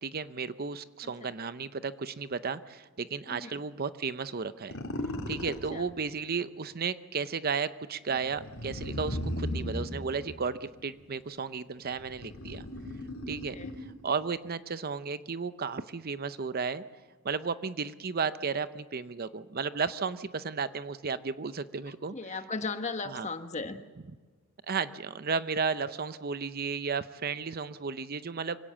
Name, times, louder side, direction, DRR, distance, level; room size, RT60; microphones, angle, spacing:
voice 1, 0.0-4.7 5.3-12.6 13.2-13.6 14.0-16.8 17.2-22.1 23.0-23.3 24.7-28.6, right 5 dB, 45° right, 13 dB, 0.7 m, -33 dB
voice 2, 3.3-3.6 5.4-5.8 13.5-13.7 21.9-23.8, left 4 dB, 35° left, 8 dB, 1.3 m, -37 dB
sound 1, 4.7-5.7 8.1-10.9 11.6-14.0, left 1 dB, 90° left, 3.4 m, -36 dB
25.0 x 17.5 x 7.5 m, 1.4 s
head